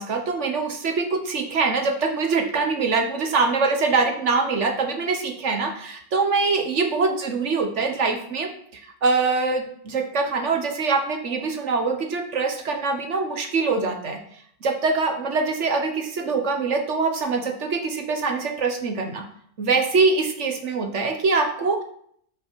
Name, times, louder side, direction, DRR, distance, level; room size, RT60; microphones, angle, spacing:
voice 1, 0.0-8.5 9.0-14.2 14.6-19.2 19.6-21.8, right 4 dB, 80° right, 4 dB, 1.5 m, -23 dB
11.5 x 5.7 x 4.6 m, 0.65 s
omnidirectional pair, 1.2 m